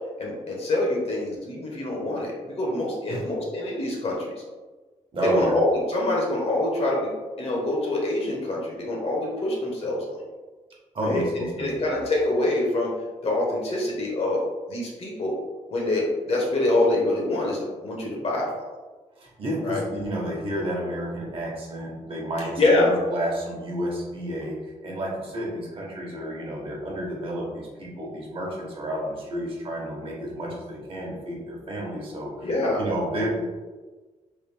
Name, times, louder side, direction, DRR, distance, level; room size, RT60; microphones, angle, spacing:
voice 1, 0.2-4.3 5.2-7.1 7.4-10.2 11.0-12.9 13.2-14.4 14.7-15.3 15.7-18.6 19.6-19.8 22.4-22.9 32.4-32.8, left 2 dB, 50° left, -2 dB, 1.0 m, -25 dB
voice 2, 5.1-5.5 10.9-11.9 19.2-32.5 32.8-33.5, right 1 dB, 45° right, -3 dB, 1.0 m, -30 dB
3.3 x 2.5 x 3.3 m, 1.3 s
wide cardioid pair, 130°, 13 cm